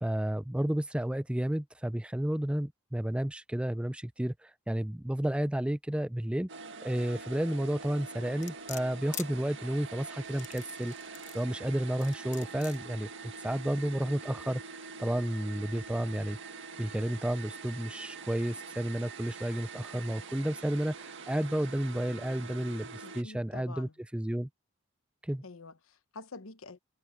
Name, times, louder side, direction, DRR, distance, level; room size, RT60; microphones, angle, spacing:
voice 1, 0.0-6.5 6.8-13.1 13.4-14.6 15.0-16.4 16.8-24.5 25.2-25.4, right 1 dB, 5° right, 0.4 m, -32 dB
sound 1, 6.5-23.2, right 4 dB, 60° right, 1.9 m, -45 dB
sound 2, 8.4-9.3 10.2-11.4 12.0-12.8 13.4-13.5, left 10 dB, 35° left, 1.1 m, -43 dB
voice 2, 23.0-23.9 25.4-26.8, left 3 dB, 80° left, 1.2 m, -47 dB
head